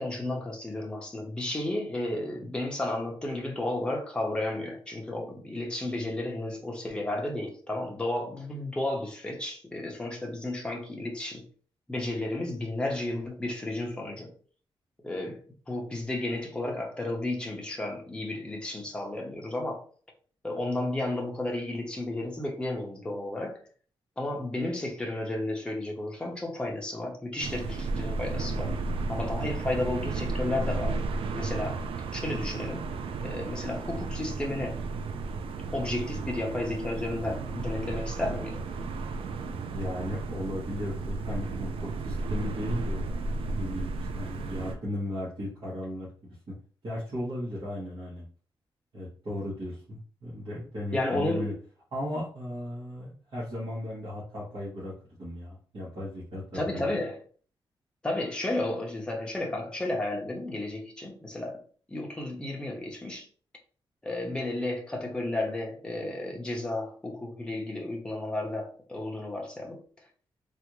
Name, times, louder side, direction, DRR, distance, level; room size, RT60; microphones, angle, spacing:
voice 1, 0.0-11.5 11.9-14.3 15.0-19.9 20.4-23.6 24.2-28.7 29.1-31.0 31.3-31.9 32.1-32.9 33.2-34.8 35.7-38.7 50.9-51.5 56.5-57.2 58.0-61.6 61.9-63.3 64.0-70.0, left 1 dB, 10° left, 0.7 m, -33 dB
sound 1, 27.4-44.7, right 3 dB, 75° right, 0.4 m, -33 dB
voice 2, 39.7-43.3 43.6-46.4 46.8-48.3 48.9-51.5 51.9-56.9, left 1 dB, 55° right, 1.4 m, -36 dB
3.4 x 2.5 x 3.0 m
wide cardioid pair, 165°, 9 cm